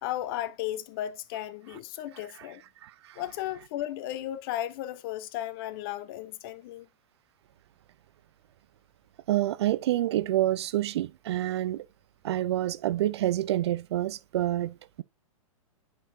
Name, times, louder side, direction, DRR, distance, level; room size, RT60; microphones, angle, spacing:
voice 1, 0.0-2.6 3.2-6.9, left 13 dB, 40° left, 0.7 m, -35 dB
voice 2, 2.8-3.2 9.3-11.9 12.2-15.0, right 14 dB, 50° right, 0.4 m, -28 dB
10.0 x 4.5 x 2.6 m
figure-of-eight pair, 110°, 18 cm